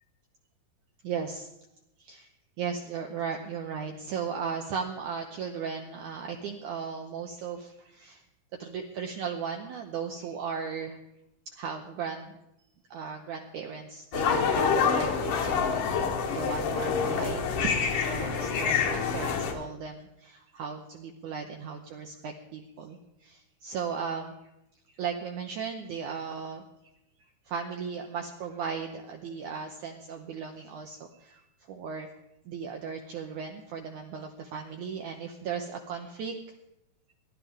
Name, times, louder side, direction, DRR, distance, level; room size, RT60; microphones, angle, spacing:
voice 1, 1.0-1.5 2.0-2.3 2.6-8.2 8.6-11.0 11.6-12.4 12.9-24.3 24.9-26.6 27.5-32.1 32.4-36.3, right 6 dB, 80° right, 3 dB, 1.8 m, -36 dB
sound 1, 14.1-19.5, left 6 dB, 65° left, 2.5 m, -27 dB
18.5 x 11.5 x 3.6 m, 0.87 s
omnidirectional pair, 4.4 m